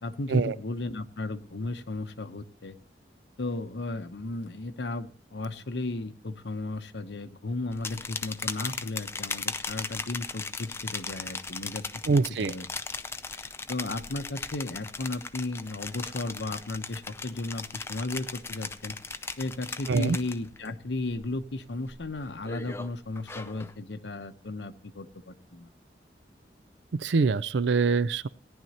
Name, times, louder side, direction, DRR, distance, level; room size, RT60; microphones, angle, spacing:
voice 1, 0.0-2.8 3.4-12.7 13.3-19.0 19.4-25.7, left 2 dB, 80° left, 9 dB, 0.9 m, -35 dB
sound 1, 7.7-20.7 21.0-21.4 21.9-23.7, left 4 dB, 15° left, 0.4 m, -38 dB
voice 2, 12.1-12.5 19.9-20.2 26.9-28.3, right 4 dB, 85° right, 19 dB, 0.4 m, -24 dB
17.5 x 10.5 x 2.9 m, 0.42 s
head